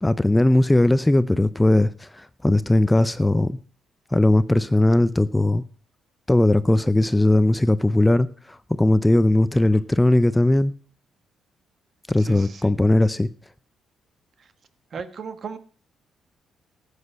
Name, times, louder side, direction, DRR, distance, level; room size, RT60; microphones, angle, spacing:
voice 1, 0.0-3.6 4.1-5.6 6.3-10.7 12.1-13.3, left 1 dB, 10° left, 0.5 m, -19 dB
voice 2, 9.5-9.8 12.2-12.7 14.9-15.6, right 6 dB, 50° right, 1.4 m, -36 dB
13.5 x 8.2 x 5.6 m
cardioid pair, 90°, 0 cm